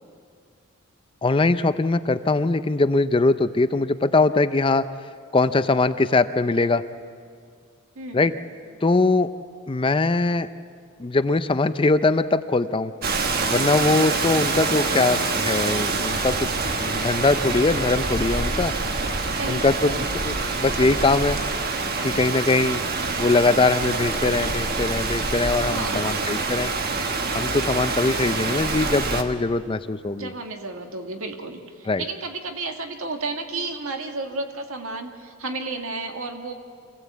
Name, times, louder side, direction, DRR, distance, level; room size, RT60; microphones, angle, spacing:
voice 1, 1.2-4.9 5.3-6.8 8.1-8.3 8.8-9.3 9.7-10.5 11.0-12.9 13.5-18.7 19.5-21.4 22.0-22.8 23.2-26.7 27.3-30.3 31.9-32.0, left 3 dB, 25° left, 12 dB, 0.5 m, -22 dB
voice 2, 8.0-8.3 19.3-20.1 25.6-26.4 30.2-36.5, right 3 dB, 65° right, 4 dB, 1.9 m, -32 dB
Rain, 13.0-29.2, right 3 dB, 45° right, 1.3 m, -26 dB
25.0 x 16.5 x 8.3 m, 2.1 s
head